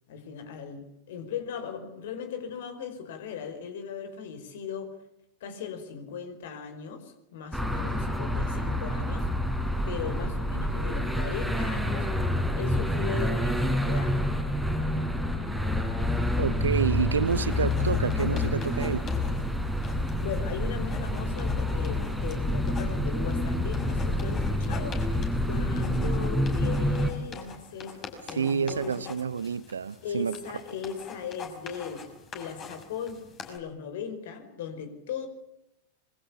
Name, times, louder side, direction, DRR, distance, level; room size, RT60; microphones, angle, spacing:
voice 1, 0.1-4.9 5.4-9.3 9.8-12.1 12.5-14.2 20.2-25.0 25.5-27.9 28.3-29.1 30.0-32.0 32.3-35.3, left 7 dB, 55° left, 4.8 m, -38 dB
sound 1, 7.5-27.1, left 1 dB, ahead, 4.1 m, -28 dB
voice 2, 16.4-19.1 28.3-30.4, right 6 dB, 70° right, 0.9 m, -28 dB
sound 2, 17.3-33.6, left 5 dB, 30° left, 5.9 m, -45 dB
26.0 x 23.5 x 7.2 m
figure-of-eight pair, 90°, 0 cm